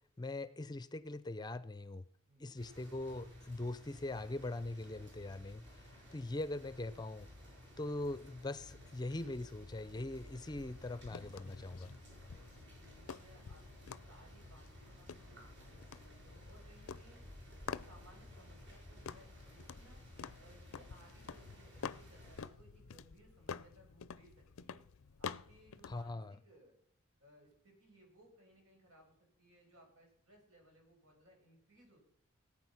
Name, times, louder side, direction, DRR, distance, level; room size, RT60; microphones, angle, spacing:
voice 1, 0.2-2.1 2.4-7.3 7.8-11.9 25.9-26.4, left 2 dB, 20° left, 15 dB, 0.5 m, -42 dB
voice 2, 2.3-2.6 12.5-17.2 17.6-20.0 20.4-24.8 25.2-26.7 27.2-32.0, right 1 dB, 85° right, 1 dB, 6.1 m, -64 dB
sound 1, 2.6-22.5, left 1 dB, 55° right, 6.1 m, -56 dB
sound 2, 10.5-26.1, left 6 dB, 85° left, 0.5 m, -50 dB
18.5 x 8.7 x 5.7 m, 0.66 s
head